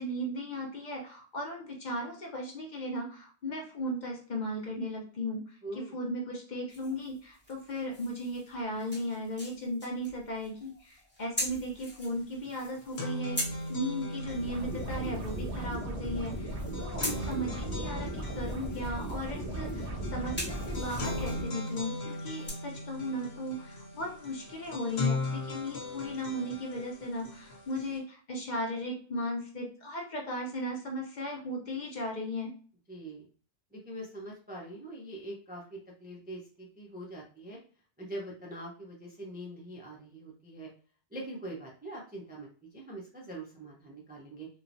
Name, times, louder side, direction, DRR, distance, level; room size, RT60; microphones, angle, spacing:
voice 1, 0.0-13.4 13.7-32.5, equal, 50° left, 0 dB, 0.7 m, -36 dB
voice 2, 5.6-6.0 32.9-33.3 33.7-37.6 38.0-40.7 41.1-42.5 42.7-44.5, right 1 dB, 15° right, -3 dB, 0.4 m, -43 dB
sound 1, 6.7-22.5, left 1 dB, 10° left, 0.9 m, -43 dB
sound 2, 12.0-12.1 12.4-28.0, left 2 dB, 70° left, 1.0 m, -39 dB
sound 3, 14.2-21.4, right 1 dB, 90° right, 0.9 m, -36 dB
3.1 x 2.2 x 2.5 m, 0.42 s
omnidirectional pair, 1.1 m